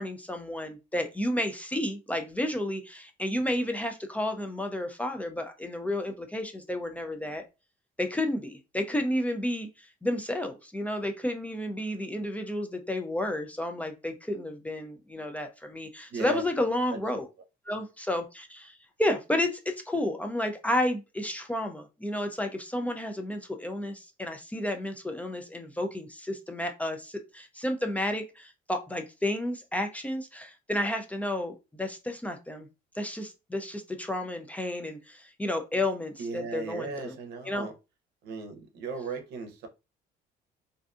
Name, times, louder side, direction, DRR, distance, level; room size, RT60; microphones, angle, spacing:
voice 1, 0.0-7.4 8.0-17.3 17.7-32.7 33.0-37.1 37.5-37.7, left 1 dB, 10° left, 0.3 m, -31 dB
voice 2, 16.1-16.4 16.9-17.0 36.2-37.7 38.2-39.7, right 4 dB, 85° right, 0.6 m, -36 dB
2.5 x 2.3 x 2.4 m
cardioid pair, 110°, 17 cm